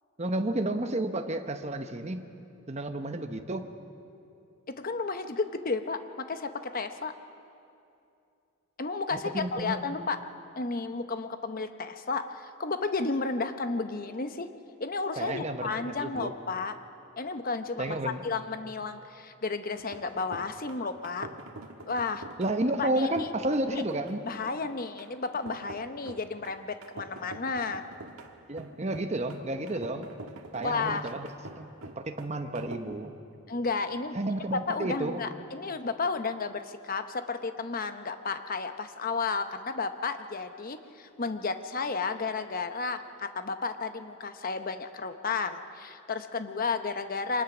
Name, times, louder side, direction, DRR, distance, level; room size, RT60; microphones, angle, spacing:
voice 1, 0.2-2.2 2.7-3.7 9.3-9.8 15.2-16.3 17.8-18.2 22.4-24.2 28.5-30.1 30.5-31.3 31.6-31.7 32.0-33.1 34.1-35.2, right 1 dB, 30° right, 7 dB, 0.9 m, -31 dB
voice 2, 4.8-6.0 6.3-7.1 8.8-10.2 10.6-14.5 14.8-16.7 17.2-21.3 21.9-22.2 22.8-23.3 23.7-23.8 24.2-27.8 30.6-31.1 33.5-34.2 34.7-47.4, left 4 dB, 40° left, 9 dB, 0.8 m, -32 dB
sound 1, 19.8-32.8, right 2 dB, 85° right, 1.5 m, -46 dB
24.5 x 20.0 x 6.1 m, 2.6 s
head